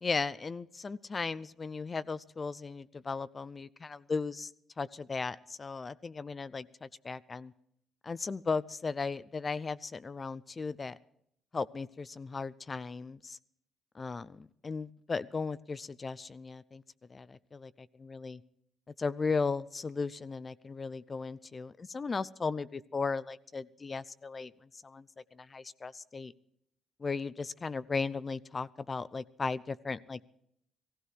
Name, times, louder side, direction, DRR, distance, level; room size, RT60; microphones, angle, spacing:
voice 1, 0.0-4.5 4.8-7.5 8.0-11.0 11.5-13.4 14.0-16.8 17.1-18.4 19.0-24.5 24.8-25.1 25.3-26.3 27.0-30.2, left 4 dB, 35° left, 16 dB, 0.5 m, -36 dB
16.0 x 15.5 x 4.8 m, 0.72 s
supercardioid pair, 70°, 0 cm